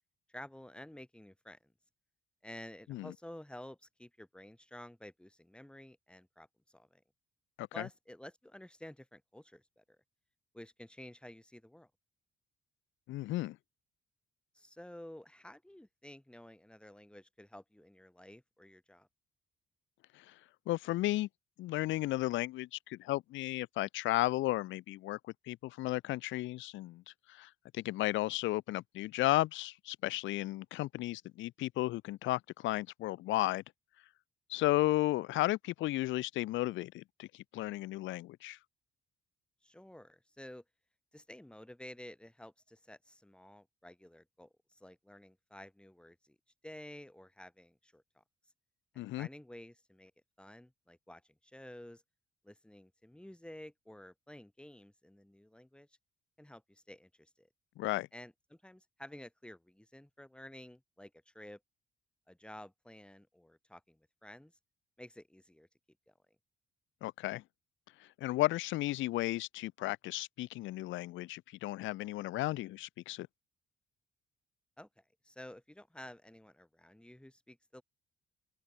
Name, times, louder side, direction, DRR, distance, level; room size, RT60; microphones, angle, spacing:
voice 1, 0.3-1.7 2.4-7.0 7.7-10.0 10.5-11.9 14.5-19.1 39.6-40.6 41.1-46.4 46.6-48.2 48.9-50.1 50.4-52.0 52.4-55.9 56.4-57.5 58.1-61.6 62.3-64.5 65.0-65.7 66.1-66.2 74.8-77.8, left 1 dB, 5° left, 4.7 m, -52 dB
voice 2, 13.1-13.6 20.1-20.3 20.7-21.3 21.6-25.2 25.5-27.0 27.3-33.6 34.5-38.6 49.0-49.3 57.8-58.1 67.0-67.4 68.0-73.3, left 17 dB, 75° left, 0.4 m, -34 dB
open air
cardioid pair, 90°, 20 cm